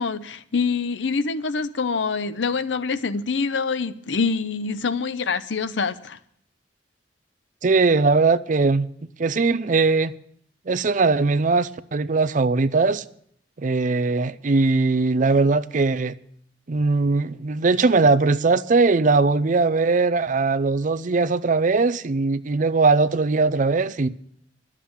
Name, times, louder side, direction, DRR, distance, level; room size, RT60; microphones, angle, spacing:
voice 1, 0.0-6.2, left 4 dB, 80° left, 0.7 m, -25 dB
voice 2, 7.6-8.9 9.2-10.1 10.7-13.0 13.6-16.1 16.7-24.1, right 3 dB, 45° right, 0.5 m, -20 dB
11.5 x 7.5 x 8.8 m
head